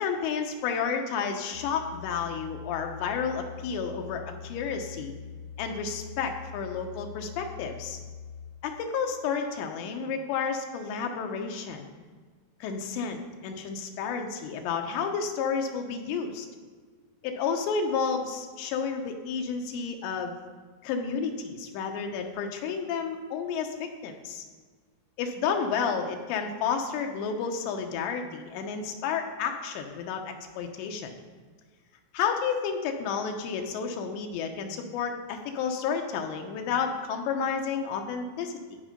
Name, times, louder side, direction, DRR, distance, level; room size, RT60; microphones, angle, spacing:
voice 1, 0.0-5.1 5.6-8.0 8.6-11.9 12.6-16.5 17.2-20.4 20.8-24.4 25.2-31.1 32.1-38.8, left 6 dB, 85° left, 4 dB, 3.2 m, -31 dB
sound 1, 1.5-8.5, left 7 dB, 60° right, 2.5 m, -43 dB
16.0 x 5.6 x 5.2 m, 1.5 s
omnidirectional pair, 4.9 m